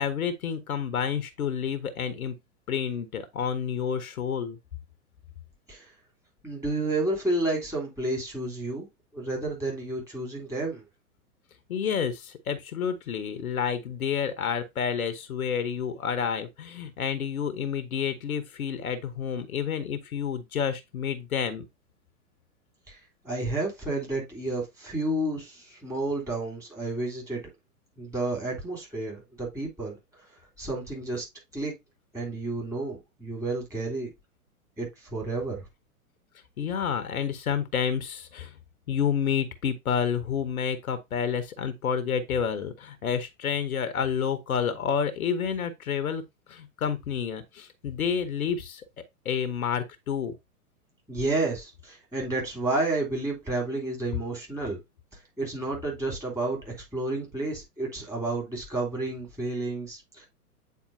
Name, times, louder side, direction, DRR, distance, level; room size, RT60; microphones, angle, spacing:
voice 1, 0.0-2.4 2.7-4.6 11.7-21.6 36.6-38.5 38.9-46.2 46.5-48.8 49.2-50.3, left 7 dB, 65° left, 1.1 m, -29 dB
voice 2, 6.4-8.9 9.1-10.8 22.9-23.0 23.2-27.4 28.0-30.0 30.6-31.2 31.5-31.7 32.1-34.1 34.8-35.7 51.1-54.8 55.1-60.3, right 2 dB, 5° right, 3.3 m, -31 dB
8.6 x 4.2 x 2.7 m
figure-of-eight pair, 110°, 46 cm